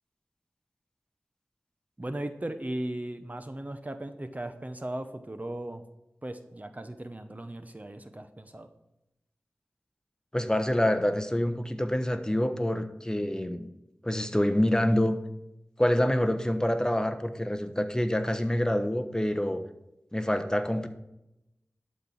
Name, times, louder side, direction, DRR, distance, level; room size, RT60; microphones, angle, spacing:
voice 1, 2.0-5.8 6.2-8.7, right 1 dB, 30° right, 9 dB, 0.8 m, -37 dB
voice 2, 10.3-13.7 14.0-15.2 15.8-19.6 20.1-20.9, left 1 dB, 15° left, 8 dB, 1.0 m, -26 dB
11.5 x 4.4 x 7.1 m, 0.90 s
cardioid pair, 40°, 5 cm